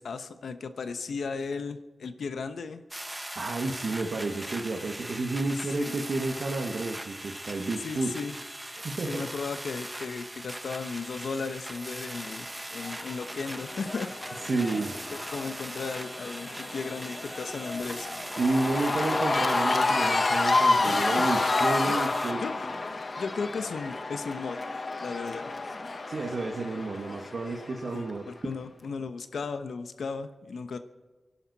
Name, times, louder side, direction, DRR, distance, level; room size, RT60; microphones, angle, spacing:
voice 1, 0.0-2.8 5.8-6.0 7.8-8.3 9.1-12.5 12.7-14.1 15.1-18.1 20.9-21.3 21.9-22.0 22.4-22.5 23.2-24.6 25.0-25.5 27.9-30.8, left 5 dB, 90° left, 9 dB, 0.9 m, -35 dB
sound 1, 2.9-22.3, right 1 dB, 15° right, 1.1 m, -40 dB
voice 2, 3.3-8.1 8.7-9.3 14.4-14.9 18.4-22.4 26.1-28.6, right 3 dB, 65° right, 1 dB, 1.5 m, -31 dB
Cheering / Crowd, 12.8-28.1, left 3 dB, 40° left, 1.0 m, -30 dB
29.0 x 11.5 x 4.1 m, 1.3 s
wide cardioid pair, 115°, 0 cm